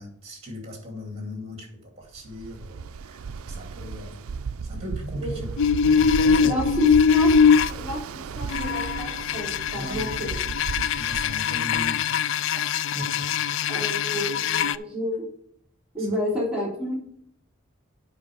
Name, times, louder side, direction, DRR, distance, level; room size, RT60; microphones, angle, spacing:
voice 1, 0.0-4.2 4.6-5.5 5.8-6.7 9.7-12.0 12.5-13.3 16.0-16.1, equal, 30° right, 1 dB, 2.6 m, -38 dB
Ocean, 2.1-12.0, right 5 dB, 80° right, 0.4 m, -35 dB
sound 1, 5.6-7.7 8.5-14.8, left 6 dB, 60° left, 0.3 m, -22 dB
voice 2, 6.4-7.3 7.7-10.4 13.7-15.3 15.9-17.0, equal, 5° right, -5 dB, 3.2 m, -30 dB
8.5 x 5.4 x 5.1 m, 0.68 s
head